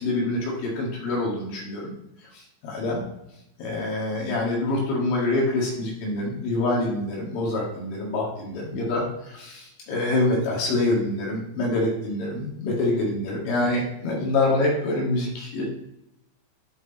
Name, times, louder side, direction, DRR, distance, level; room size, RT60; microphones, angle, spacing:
voice 1, 0.0-1.9 2.3-3.0 3.6-15.6, left 2 dB, 70° left, -4 dB, 4.1 m, -26 dB
12.0 x 4.6 x 3.0 m, 0.85 s
omnidirectional pair, 5.8 m